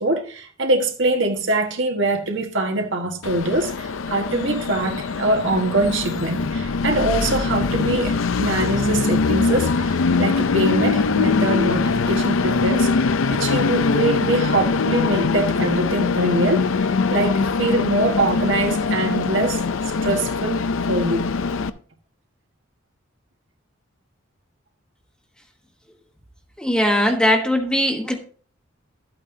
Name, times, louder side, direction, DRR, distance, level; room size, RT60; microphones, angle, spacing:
voice 1, 0.0-19.6 20.0-20.6 20.9-21.3, right 2 dB, 65° right, 1.6 m, -23 dB
Train, 3.2-21.7, left 4 dB, 85° left, 0.5 m, -22 dB
voice 2, 26.6-28.2, left 1 dB, 5° left, 1.1 m, -19 dB
12.5 x 8.6 x 2.7 m
head